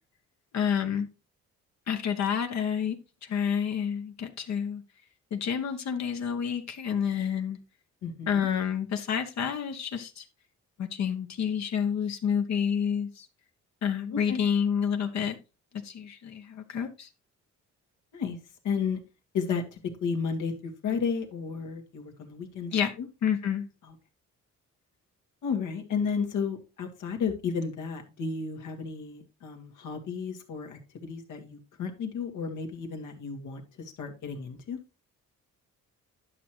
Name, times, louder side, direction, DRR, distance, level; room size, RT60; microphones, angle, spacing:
voice 1, 0.5-1.1 1.9-3.0 3.2-4.8 5.3-7.6 8.3-10.2 10.8-13.3 13.8-15.4 15.8-17.1 22.7-22.9 23.2-23.7, left 7 dB, 60° left, 1.1 m, -29 dB
voice 2, 8.0-8.5 14.1-14.4 18.1-18.4 18.6-19.0 19.3-22.7 23.0-23.1 23.8-23.9 25.4-34.8, left 6 dB, 80° left, 2.0 m, -33 dB
11.0 x 6.2 x 3.1 m
cardioid pair, 90°, 30 cm